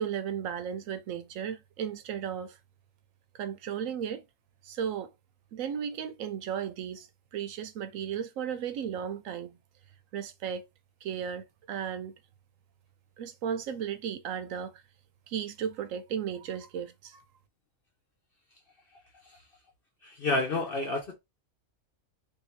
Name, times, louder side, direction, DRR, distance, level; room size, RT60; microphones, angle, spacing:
voice 1, 0.0-2.6 3.3-4.2 4.6-5.1 5.5-9.6 10.1-10.6 11.0-12.1 13.2-14.8 15.3-17.2, right 8 dB, 70° right, 1.0 m, -35 dB
voice 2, 20.0-21.2, left 2 dB, 50° left, 0.9 m, -29 dB
3.3 x 2.8 x 3.0 m
omnidirectional pair, 1.5 m